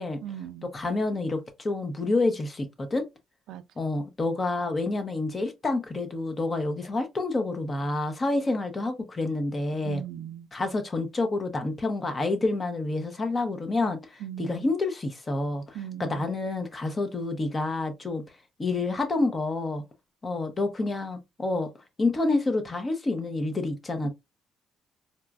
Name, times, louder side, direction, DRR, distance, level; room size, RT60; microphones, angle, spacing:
voice 1, 0.2-0.7 3.5-3.6 9.8-10.5 14.2-14.7 15.7-16.4, right 11 dB, 85° right, 0.3 m, -39 dB
voice 2, 0.7-3.0 3.8-10.0 10.5-18.2 18.6-19.8 20.2-21.7 22.0-24.1, left 2 dB, 25° left, 0.7 m, -28 dB
3.9 x 2.3 x 2.3 m
cardioid pair, 155°, 0 cm